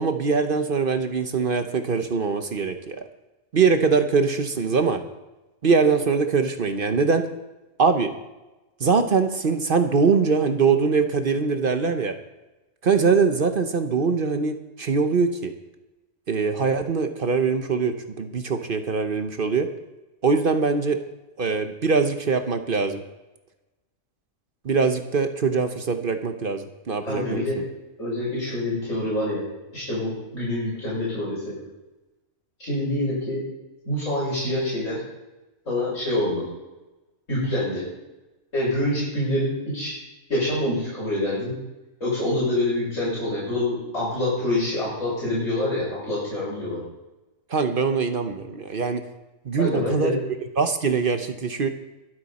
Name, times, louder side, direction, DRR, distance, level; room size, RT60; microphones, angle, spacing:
voice 1, 0.0-3.0 3.5-5.0 5.6-7.2 7.8-8.1 8.8-12.1 12.8-15.5 16.3-19.7 20.2-21.0 21.4-23.0 24.6-27.6 47.5-49.0 49.4-50.2 50.6-51.7, right 5 dB, 45° right, 7 dB, 0.9 m, -22 dB
voice 2, 27.1-27.6 28.0-29.4 29.7-31.6 32.6-33.4 33.8-35.0 35.7-36.4 37.3-37.8 38.5-39.9 40.3-41.5 42.0-46.8 49.6-50.1, left 1 dB, 60° left, -9 dB, 6.0 m, -26 dB
22.0 x 7.8 x 4.2 m, 1.1 s
omnidirectional pair, 1.5 m